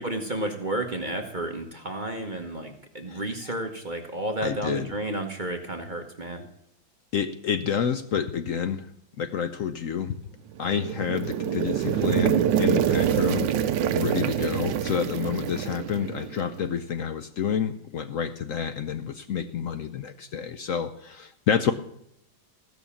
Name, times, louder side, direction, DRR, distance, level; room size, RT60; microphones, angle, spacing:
voice 1, 0.0-6.4 14.4-14.6, right 1 dB, 30° right, 3 dB, 1.0 m, -32 dB
voice 2, 4.4-4.9 7.1-8.9 9.2-10.2 10.6-13.5 13.9-21.7, left 7 dB, 75° left, 9 dB, 0.7 m, -29 dB
sound 1, 10.6-16.6, right 9 dB, 75° right, 1.3 m, -26 dB
16.0 x 6.3 x 7.1 m, 0.77 s
omnidirectional pair, 2.1 m